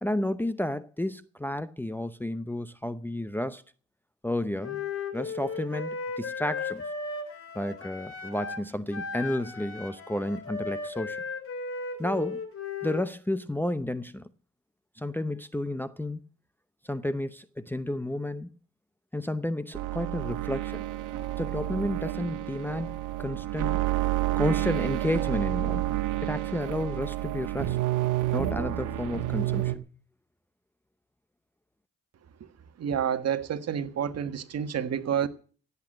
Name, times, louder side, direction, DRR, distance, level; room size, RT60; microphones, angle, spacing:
voice 1, 0.0-3.6 4.2-4.8 5.1-5.9 6.2-6.8 7.5-11.2 12.0-12.4 12.8-14.2 15.0-16.2 16.9-18.5 19.1-20.8 21.4-22.9 23.2-23.8 24.4-26.0 26.2-27.8 28.3-29.7, left 1 dB, 5° left, 0.7 m, -31 dB
Wind instrument woodwind instrument, 4.6-8.6 8.9-13.1, left 4 dB, 45° left, 3.4 m, -36 dB
sound 1, 19.7-29.8, right 14 dB, 90° right, 1.2 m, -29 dB
voice 2, 32.8-35.3, right 8 dB, 55° right, 1.5 m, -29 dB
16.5 x 8.3 x 7.7 m
cardioid pair, 90°, 30 cm